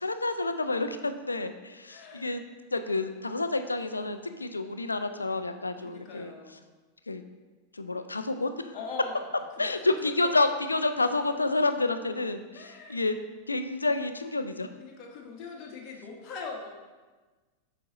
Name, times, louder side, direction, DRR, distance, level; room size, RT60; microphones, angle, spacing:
voice 1, 0.0-2.4 2.7-6.3 7.1-7.2 7.7-8.8 9.6-13.2 13.5-14.7, left 2 dB, 80° left, 9 dB, 0.4 m, -29 dB
voice 2, 1.9-2.3 5.8-6.6 8.7-9.2 9.5-10.6 11.2-11.3 12.5-13.0 14.8-16.7, left 4 dB, 40° left, -1 dB, 1.1 m, -42 dB
7.2 x 5.1 x 2.8 m, 1.3 s
figure-of-eight pair, 90°, 0 cm